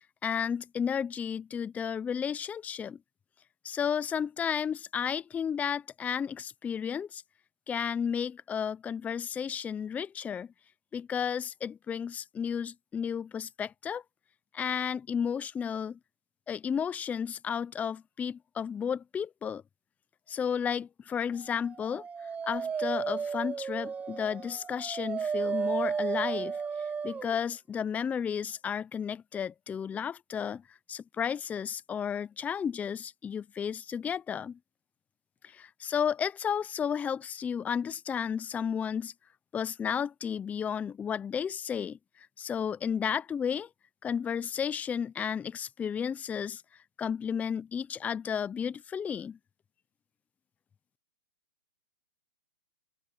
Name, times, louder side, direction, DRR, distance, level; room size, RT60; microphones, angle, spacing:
voice 1, 0.2-3.0 3.6-7.2 7.7-10.5 10.9-14.0 14.5-16.0 16.5-19.6 20.3-22.0 22.4-26.6 27.0-30.6 30.9-34.6 35.4-39.1 39.5-43.7 44.0-46.6 47.0-49.4, left 7 dB, 10° left, 0.6 m, -33 dB
Dog, 21.7-27.3, right 6 dB, 10° right, 1.1 m, -33 dB
open air
hypercardioid pair, 140°, 13 cm